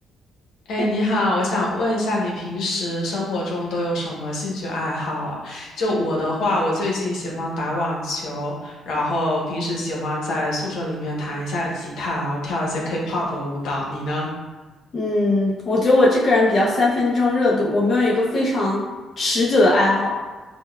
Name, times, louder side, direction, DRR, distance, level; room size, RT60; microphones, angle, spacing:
voice 1, 0.7-14.3, left 1 dB, 80° left, -3 dB, 0.9 m, -25 dB
voice 2, 14.9-18.9 19.2-20.2, left 2 dB, 45° left, -5 dB, 0.7 m, -19 dB
5.3 x 2.2 x 2.2 m, 1.3 s
cardioid pair, 90°, 0 cm